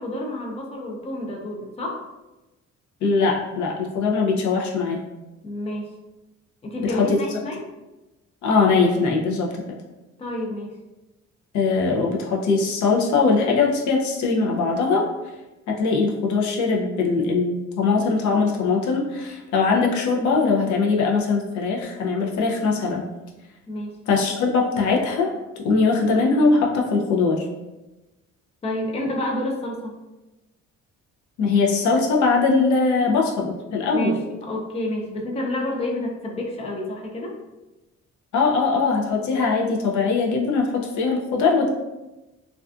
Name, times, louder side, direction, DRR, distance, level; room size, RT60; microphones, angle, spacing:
voice 1, 0.0-2.0 5.4-5.9 6.6-7.6 10.2-10.8 23.7-24.0 28.6-30.0 33.9-37.4, left 1 dB, 20° left, -1 dB, 0.5 m, -29 dB
voice 2, 3.0-5.0 6.8-7.2 8.4-9.5 11.5-15.1 15.7-23.0 24.1-25.3 25.6-27.5 31.4-34.2 38.3-41.7, left 4 dB, 70° left, -1 dB, 0.5 m, -21 dB
2.4 x 2.3 x 2.3 m, 1.0 s
cardioid pair, 90°, 30 cm